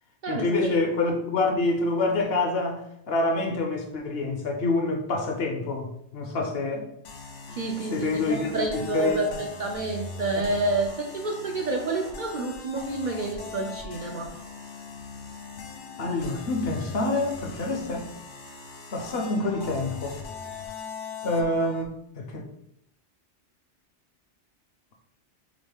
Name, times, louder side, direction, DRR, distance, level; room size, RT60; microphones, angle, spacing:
voice 1, 0.3-6.9 7.9-9.4 16.0-18.1 18.9-20.2 21.2-22.5, left 2 dB, 60° left, 2 dB, 0.9 m, -27 dB
sound 1, 7.0-21.9, left 4 dB, 90° left, 1.0 m, -41 dB
voice 2, 7.6-14.3, right 2 dB, 55° right, 0 dB, 0.6 m, -29 dB
3.9 x 3.1 x 3.5 m, 0.74 s
omnidirectional pair, 1.2 m